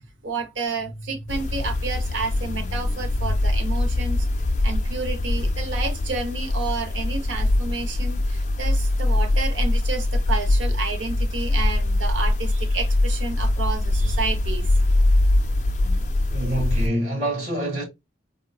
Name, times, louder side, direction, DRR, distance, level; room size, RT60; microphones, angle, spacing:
voice 1, 0.2-4.3 4.6-14.7, right 4 dB, 85° right, 0.7 m, -30 dB
sound 1, 1.3-16.9, left 1 dB, 40° left, 0.3 m, -22 dB
voice 2, 16.3-17.8, right 1 dB, 40° right, 1.5 m, -26 dB
3.7 x 2.1 x 2.3 m
head